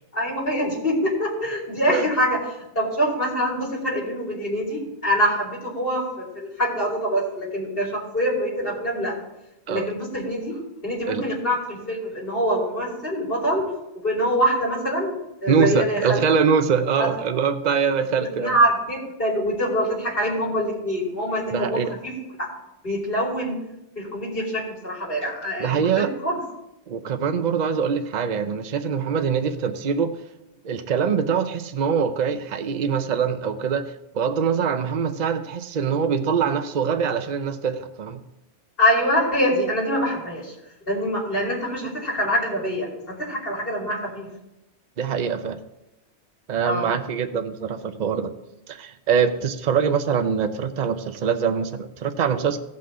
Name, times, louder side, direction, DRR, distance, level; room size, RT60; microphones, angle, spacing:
voice 1, 0.1-2.4 2.7-9.2 9.7-13.7 13.9-15.1 15.4-16.2 16.9-17.1 18.1-22.1 22.4-22.5 22.8-23.6 23.9-26.4 38.8-40.5 40.9-44.3 46.6-46.9, equal, 50° left, -5 dB, 3.2 m, -24 dB
voice 2, 15.5-18.6 21.5-21.9 25.6-26.1 26.9-30.1 30.6-38.2 45.0-45.6 46.5-48.3 48.7-52.6, right 6 dB, 45° right, 8 dB, 0.7 m, -23 dB
17.0 x 5.8 x 3.8 m, 0.91 s
omnidirectional pair, 1.2 m